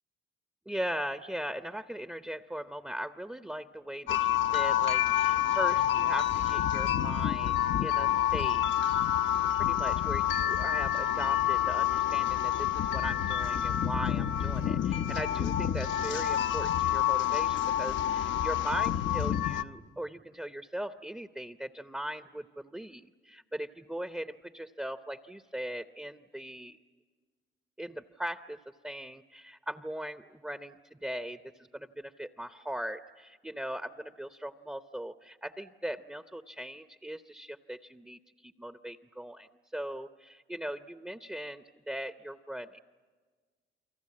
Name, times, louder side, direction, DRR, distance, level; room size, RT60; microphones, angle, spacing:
voice 1, 0.7-8.6 9.6-26.8 27.8-28.6 28.8-31.4 31.7-42.8, right 1 dB, 5° right, 9 dB, 0.7 m, -39 dB
sound 1, 4.1-19.6, left 11 dB, 70° left, 0.8 m, -28 dB
29.5 x 23.0 x 8.6 m, 1.5 s
cardioid pair, 90°, 20 cm